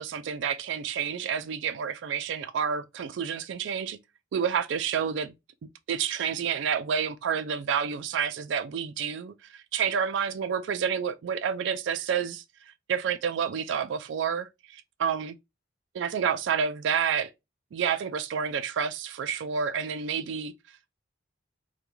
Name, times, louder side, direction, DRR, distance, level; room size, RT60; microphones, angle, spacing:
voice 1, 0.0-4.0 4.3-5.3 5.9-12.4 12.9-15.4 15.9-17.3 17.7-20.5, right 7 dB, 70° right, 0.3 m, -29 dB
2.3 x 2.2 x 2.9 m
head